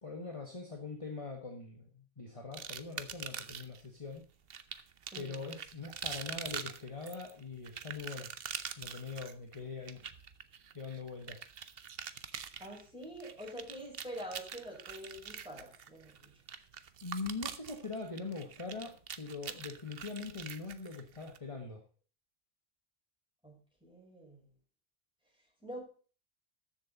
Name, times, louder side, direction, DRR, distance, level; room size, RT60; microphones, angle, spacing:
voice 1, 0.0-4.2 5.1-8.3 8.8-10.0 10.7-11.5 17.0-21.8, left 4 dB, 30° left, 2 dB, 1.7 m, -42 dB
sound 1, 2.5-3.8 4.5-21.4, right 7 dB, 65° right, 1.0 m, -44 dB
voice 2, 5.1-5.5 12.6-16.3 23.4-24.5 25.6-25.8, right 1 dB, 5° right, -2 dB, 6.0 m, -46 dB
13.5 x 7.4 x 4.1 m, 0.38 s
omnidirectional pair, 1.1 m